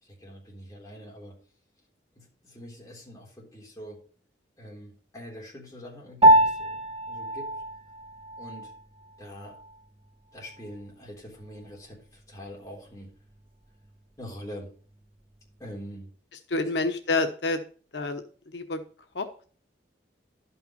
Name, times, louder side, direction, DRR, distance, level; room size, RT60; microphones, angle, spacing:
voice 1, 0.0-1.4 2.2-4.0 4.6-7.6 8.4-8.7 9.2-9.6 10.3-13.2 14.2-14.8 15.6-16.1, equal, 20° left, -3 dB, 3.6 m, -44 dB
Piano, 6.2-15.8, right 1 dB, 30° right, 1.5 m, -27 dB
voice 2, 16.5-17.6 17.9-18.2 18.5-18.8 19.1-19.3, left 3 dB, 80° left, 6 dB, 1.0 m, -27 dB
11.5 x 5.7 x 5.2 m, 0.42 s
head